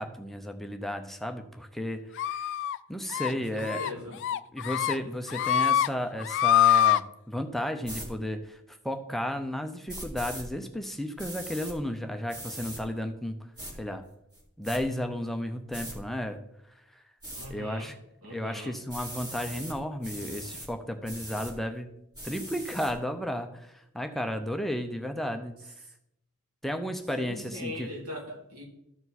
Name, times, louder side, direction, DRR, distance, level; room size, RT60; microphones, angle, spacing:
voice 1, 0.0-2.5 2.9-3.8 4.5-13.4 13.8-14.0 14.6-16.4 16.9-17.0 17.5-18.0 18.3-21.9 22.2-25.5 26.6-27.9, equal, ahead, 6 dB, 0.6 m, -33 dB
sound 1, 2.2-2.8 3.1-3.3 3.6-3.9 4.2-4.9 5.3-5.9 6.2-7.0, left 11 dB, 55° left, 0.3 m, -24 dB
voice 2, 3.3-4.2 17.3-17.9 18.2-18.8 27.1-28.6, left 1 dB, 90° right, -2 dB, 2.9 m, -40 dB
sound 2, 7.8-8.1 9.9-10.4 11.2-11.7 12.3-12.8 13.6-13.7 14.3-14.8 15.7-16.0 17.2-17.5 18.9-19.8 20.0-20.7 21.0-21.5 22.1-22.9, right 1 dB, 20° right, 2.5 m, -40 dB
13.5 x 4.7 x 4.1 m, 0.80 s
head